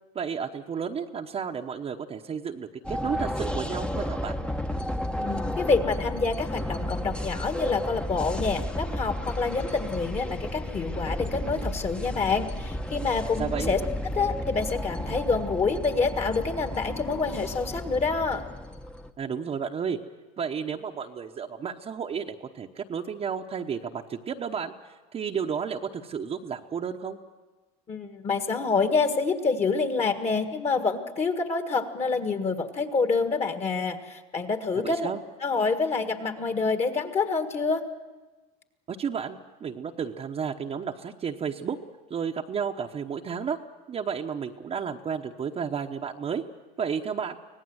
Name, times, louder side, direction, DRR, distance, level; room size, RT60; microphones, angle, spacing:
voice 1, 0.1-4.4 13.4-13.7 19.2-20.0 20.4-27.2 34.7-35.2 38.9-41.8 42.1-43.6 43.9-46.4 46.8-47.3, right 7 dB, 30° right, 2 dB, 1.0 m, -32 dB
sound 1, 2.8-19.1, left 1 dB, 5° left, 0.9 m, -33 dB
voice 2, 5.2-13.8 14.1-18.4 27.9-35.1 35.4-37.8, left 4 dB, 30° left, 7 dB, 1.7 m, -27 dB
25.0 x 18.0 x 7.9 m, 1.2 s
supercardioid pair, 115°, 20 cm